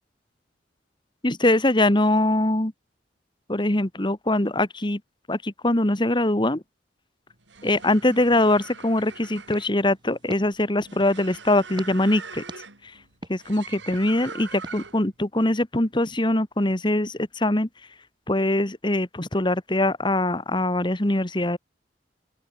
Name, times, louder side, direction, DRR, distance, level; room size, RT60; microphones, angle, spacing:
voice 1, 1.2-2.7 3.5-5.0 5.3-6.6 7.6-12.4 13.3-17.7 18.3-21.6, left 1 dB, 25° left, 1.8 m, -22 dB
sound 1, 7.3-15.1, right 4 dB, 90° right, 6.1 m, -43 dB
sound 2, 9.5-11.2 11.8-11.9 12.5-12.6 13.2-13.4 13.9-14.1 14.6-14.8, right 1 dB, 25° right, 4.4 m, -41 dB
open air
head